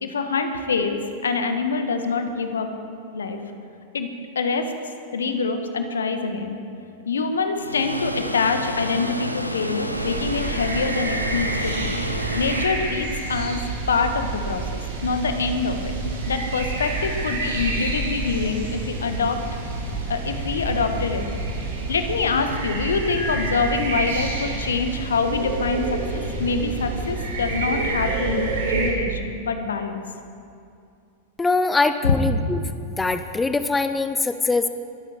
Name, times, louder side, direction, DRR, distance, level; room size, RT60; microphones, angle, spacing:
voice 1, 0.0-2.7 3.1-3.4 3.9-4.7 5.1-6.6 7.0-13.6 13.9-15.9 16.3-19.4 20.1-21.2 21.9-26.0 26.4-30.0 32.0-32.1, left 4 dB, 70° left, 7 dB, 1.4 m, -25 dB
Water, 7.6-12.7, equal, 90° right, 1.0 m, -29 dB
sound 1, 9.9-28.9, right 3 dB, 60° right, 4.2 m, -28 dB
voice 2, 31.4-32.7 33.0-34.7, left 3 dB, 10° left, 10 dB, 0.6 m, -22 dB
21.5 x 12.5 x 4.6 m, 2.4 s
figure-of-eight pair, 90°, 0 cm